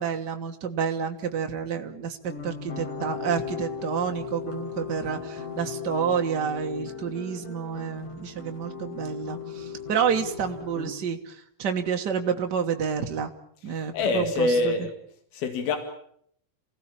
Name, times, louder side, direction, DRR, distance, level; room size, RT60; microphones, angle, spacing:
voice 1, 0.0-13.3 13.6-14.7, right 7 dB, 75° right, 4 dB, 0.9 m, -29 dB
sound 1, 2.3-10.9, left 5 dB, 60° left, 5.3 m, -37 dB
voice 2, 13.9-14.9 15.3-15.8, left 3 dB, 85° left, 6 dB, 4.0 m, -24 dB
28.5 x 17.0 x 8.7 m, 0.68 s
omnidirectional pair, 4.2 m